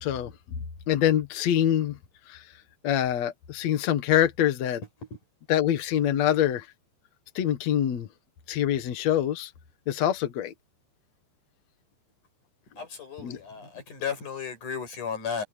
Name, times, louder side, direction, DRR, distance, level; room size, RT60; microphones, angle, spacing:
voice 1, 0.0-0.3 0.9-2.0 2.3-2.4 2.8-4.8 5.5-6.7 7.4-8.1 8.5-9.5 9.9-10.5 13.2-13.4, left 11 dB, 70° left, 1.6 m, -25 dB
voice 2, 12.7-15.4, left 6 dB, 40° left, 7.0 m, -34 dB
omnidirectional pair, 5.5 m